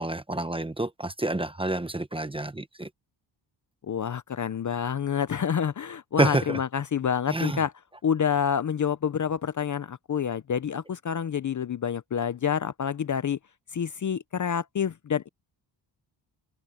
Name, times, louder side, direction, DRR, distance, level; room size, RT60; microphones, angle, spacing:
voice 1, 0.0-2.9 6.2-6.6 7.3-7.6, right 2 dB, 10° right, 0.9 m, -28 dB
voice 2, 3.8-7.7 8.0-13.4 13.7-15.3, left 8 dB, 40° left, 0.6 m, -28 dB
wide cardioid pair, 120°, 46 cm